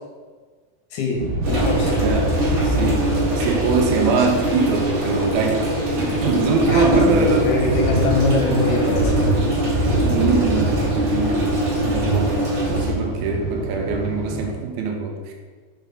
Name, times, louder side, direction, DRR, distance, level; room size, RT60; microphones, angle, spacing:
voice 1, 0.9-1.9 4.2-4.4 6.7-9.5, left 3 dB, 75° left, 0 dB, 3.0 m, -23 dB
sound 1, 1.2-14.5, right 1 dB, 65° right, 2.8 m, -25 dB
sound 2, 1.4-12.8, right 1 dB, 45° right, 2.3 m, -23 dB
voice 2, 1.9-2.4 2.6-3.1 3.4-7.5 10.0-15.3, right 4 dB, 80° right, 2 dB, 2.4 m, -23 dB
6.2 x 5.6 x 3.9 m, 1.5 s
omnidirectional pair, 4.6 m